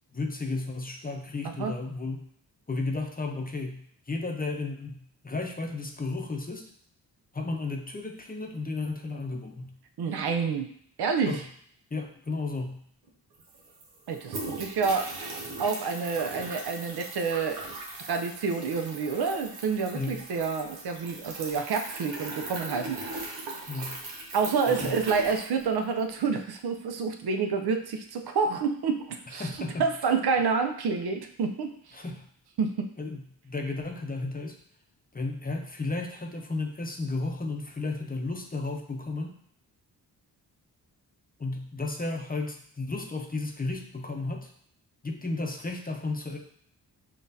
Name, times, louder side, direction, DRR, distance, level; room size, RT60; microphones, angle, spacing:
voice 1, 0.1-2.2 2.7-3.8 4.1-6.7 7.3-9.7 11.3-11.4 11.9-12.8 19.9-20.2 23.7-24.0 24.7-25.0 29.4-29.9 31.9-32.2 33.0-34.6 35.1-39.4 41.4-44.5 45.0-46.4, left 3 dB, 20° left, 3 dB, 0.7 m, -33 dB
voice 2, 10.0-10.7 11.0-11.4 14.1-17.6 18.1-23.2 24.3-29.5 29.8-31.7 32.6-32.9, right 5 dB, 65° right, 5 dB, 0.6 m, -28 dB
sound 1, 13.1-13.2 13.3-26.1, right 2 dB, 90° right, 0.8 m, -39 dB
5.3 x 2.5 x 2.7 m, 0.63 s
supercardioid pair, 45°, 41 cm